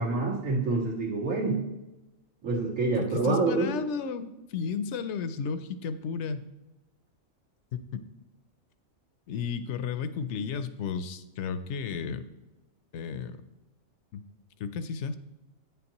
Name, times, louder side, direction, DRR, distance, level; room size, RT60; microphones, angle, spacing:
voice 1, 0.0-1.6 2.4-3.7, right 3 dB, 75° right, -4 dB, 2.2 m, -27 dB
voice 2, 3.0-6.4 7.7-7.8 9.3-12.3 12.9-13.4 14.1-14.2 14.6-15.2, left 6 dB, 70° left, 11 dB, 0.8 m, -33 dB
9.1 x 7.1 x 3.0 m, 1.0 s
omnidirectional pair, 1.4 m